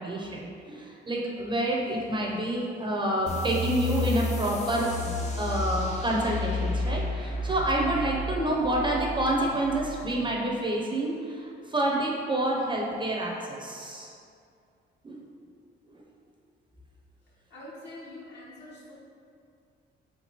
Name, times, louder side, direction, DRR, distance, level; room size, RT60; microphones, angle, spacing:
voice 1, 0.0-14.1 15.0-15.2 15.9-16.0, right 1 dB, 25° right, -2 dB, 0.6 m, -28 dB
sound 1, 3.3-10.4, left 2 dB, 35° left, 0.6 m, -32 dB
voice 2, 17.5-18.9, left 1 dB, 60° left, -6 dB, 1.3 m, -44 dB
4.3 x 3.9 x 2.9 m, 2.4 s
cardioid pair, 90°, 20 cm